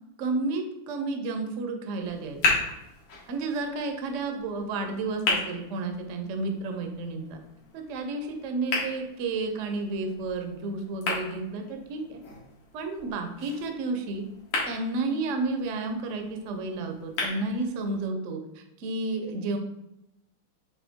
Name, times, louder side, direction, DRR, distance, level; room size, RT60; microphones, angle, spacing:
voice 1, 0.2-2.4 3.3-7.4 7.7-12.2 12.7-14.3 14.6-19.6, right 3 dB, 80° right, 5 dB, 0.6 m, -31 dB
sound 1, 2.0-18.0, left 3 dB, 90° left, 2.4 m, -35 dB
7.8 x 3.5 x 3.5 m, 0.89 s
omnidirectional pair, 2.3 m